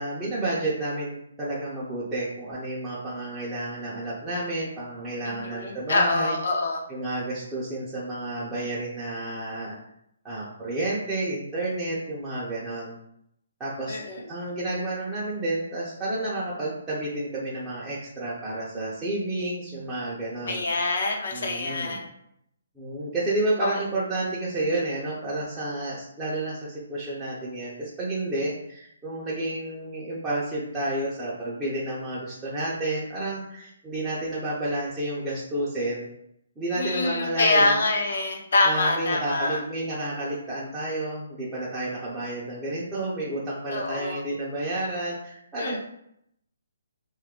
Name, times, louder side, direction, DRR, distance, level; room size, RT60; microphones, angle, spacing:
voice 1, 0.0-6.3 6.9-9.8 10.2-13.0 13.6-14.0 14.3-20.6 21.3-22.0 22.8-36.1 36.6-37.8 38.6-45.8, right 2 dB, 10° right, -9 dB, 0.5 m, -30 dB
voice 2, 5.3-6.8 13.9-14.2 20.5-22.1 23.6-23.7 36.7-39.6 43.7-44.2 45.6-45.8, left 2 dB, 60° left, 2 dB, 0.6 m, -25 dB
2.5 x 2.3 x 3.6 m, 0.75 s
hypercardioid pair, 165°, 0 cm